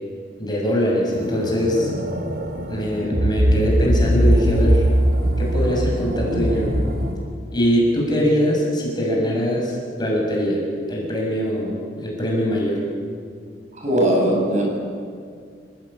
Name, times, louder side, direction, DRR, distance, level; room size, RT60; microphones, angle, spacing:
voice 1, 0.4-1.9 2.7-4.8 5.4-6.7 7.5-10.6 10.9-12.8, equal, 25° left, -2 dB, 7.0 m, -22 dB
sound 1, 1.1-7.1, equal, 60° right, 3.1 m, -21 dB
voice 2, 13.8-14.6, right 1 dB, 40° right, -1 dB, 7.0 m, -19 dB
29.0 x 17.0 x 8.8 m, 2.2 s
head